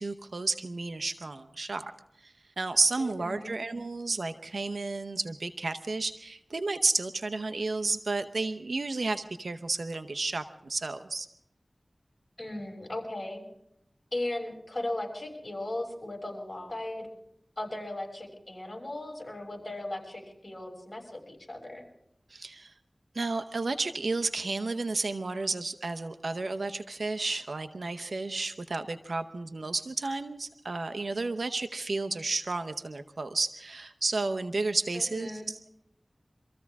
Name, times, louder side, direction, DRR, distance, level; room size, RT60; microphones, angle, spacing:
voice 1, 0.0-1.8 2.2-11.3 22.3-22.7 23.1-35.7, right 3 dB, 85° right, 9 dB, 0.8 m, -32 dB
voice 2, 3.0-3.5 12.4-13.4 14.1-17.1 17.6-21.8 34.9-35.5, left 1 dB, 40° left, 2 dB, 6.6 m, -37 dB
25.5 x 14.5 x 3.6 m, 0.76 s
wide cardioid pair, 40°, 0 cm